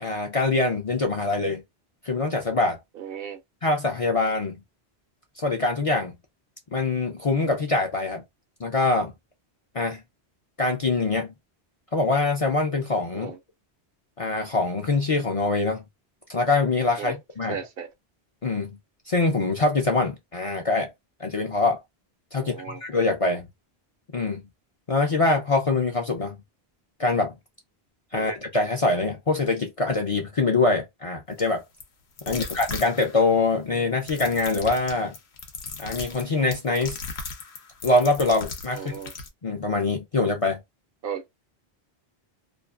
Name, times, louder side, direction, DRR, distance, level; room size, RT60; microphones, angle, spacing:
voice 1, 0.0-1.6 2.0-2.8 3.6-4.6 5.4-6.1 6.7-8.2 8.6-9.1 9.7-10.0 10.6-11.3 11.9-13.3 14.2-15.8 16.3-17.6 18.4-18.7 19.1-20.9 21.2-21.8 22.3-23.5 24.1-24.4 24.9-26.4 27.0-27.3 28.1-31.6 32.3-35.1 35.8-37.0 37.8-38.9 39.4-40.6, left 3 dB, 45° left, 0.5 m, -24 dB
voice 2, 2.9-3.4 13.1-13.4 17.0-17.2 17.5-17.9 22.3-22.8 28.1-28.3 32.3-32.4 38.7-39.1 41.0-41.2, right 8 dB, 65° right, 0.7 m, -35 dB
sound 1, 31.4-31.5 31.8-31.9 32.2-33.4 34.0-39.3, left 4 dB, 85° left, 1.0 m, -37 dB
2.5 x 2.4 x 2.3 m
omnidirectional pair, 1.1 m